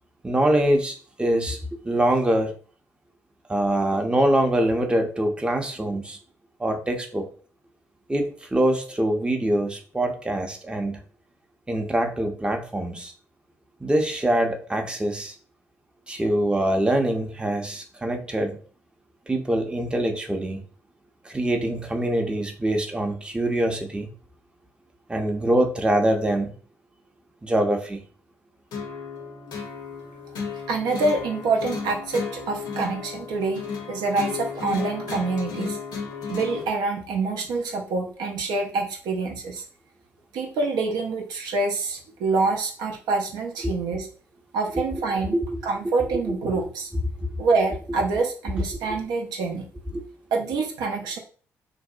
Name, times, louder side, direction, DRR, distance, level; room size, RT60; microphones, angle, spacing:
voice 1, 0.2-1.6 1.8-2.5 3.5-6.2 6.6-7.3 8.1-11.0 11.7-13.1 13.8-15.3 16.1-18.6 19.3-20.6 21.2-24.1 25.1-26.5 27.4-28.0 43.6-43.7 45.3-45.5 46.3-46.4 47.2-47.3 49.9-50.0, right 1 dB, 15° right, 0.5 m, -24 dB
sound 1, 28.7-36.7, left 5 dB, 65° left, 0.6 m, -34 dB
voice 2, 30.7-35.8 36.3-39.6 40.3-44.1 44.5-45.3 45.6-46.9 47.4-49.7 50.3-51.2, right 3 dB, 70° right, 0.4 m, -26 dB
2.6 x 2.0 x 2.4 m
hypercardioid pair, 45°, 8 cm